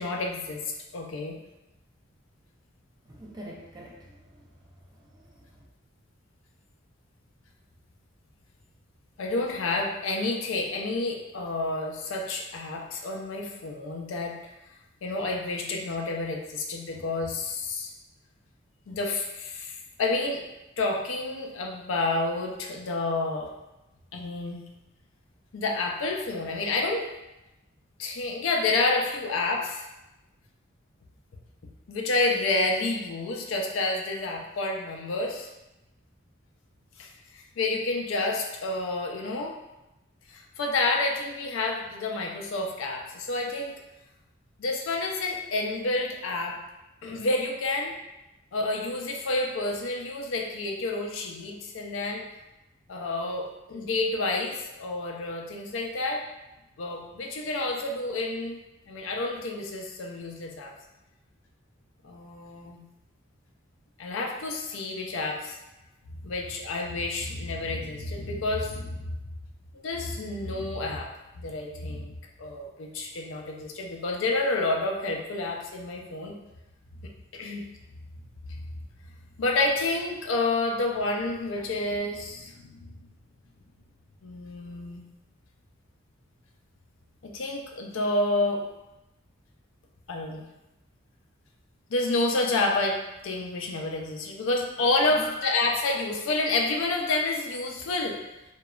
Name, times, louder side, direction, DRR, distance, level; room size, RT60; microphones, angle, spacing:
voice 1, 0.0-1.4 9.2-14.3 15.0-17.9 18.9-20.4 20.8-23.5 24.1-24.6 25.5-27.1 28.0-29.8 31.9-35.5 37.0-39.5 40.3-43.8 44.6-46.6 47.0-47.9 48.5-52.3 52.9-56.2 56.8-58.6 58.9-60.7 62.0-62.8 64.0-65.6 66.2-69.0 69.7-71.1 71.4-76.4 77.0-77.7 78.5-78.6 79.4-82.7 84.2-85.0 87.2-88.6 90.1-90.4 91.9-98.2, left 2 dB, 70° left, 1 dB, 0.4 m, -29 dB
voice 2, 3.0-4.5 4.9-5.6 94.0-94.1 95.2-95.4, right 1 dB, 20° right, -3 dB, 0.4 m, -45 dB
2.9 x 2.2 x 2.3 m, 0.96 s
head